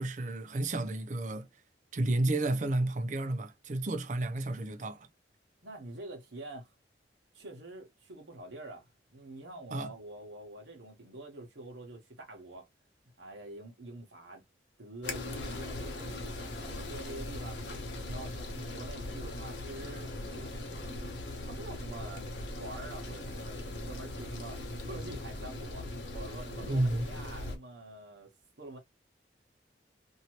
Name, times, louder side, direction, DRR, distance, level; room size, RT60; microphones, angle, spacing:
voice 1, 0.0-1.5 1.9-5.1 9.7-9.9 26.7-27.1, right 2 dB, 45° right, 0.5 m, -31 dB
voice 2, 5.6-6.7 7.3-12.7 13.2-14.4 14.8-17.6 18.0-21.1 21.5-22.2 22.5-28.3 28.6-28.8, right 2 dB, 90° right, 1.1 m, -46 dB
sound 1, 15.0-27.6, left 2 dB, 80° left, 0.9 m, -40 dB
2.8 x 2.7 x 2.9 m
head